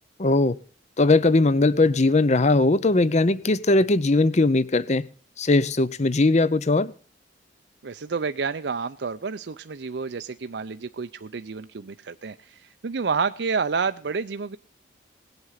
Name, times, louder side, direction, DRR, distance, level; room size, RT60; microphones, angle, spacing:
voice 1, 0.2-0.6 1.0-5.0 5.4-6.9, left 2 dB, 40° left, 0.7 m, -19 dB
voice 2, 7.8-14.6, right 5 dB, 65° right, 0.5 m, -29 dB
18.5 x 8.1 x 5.7 m
head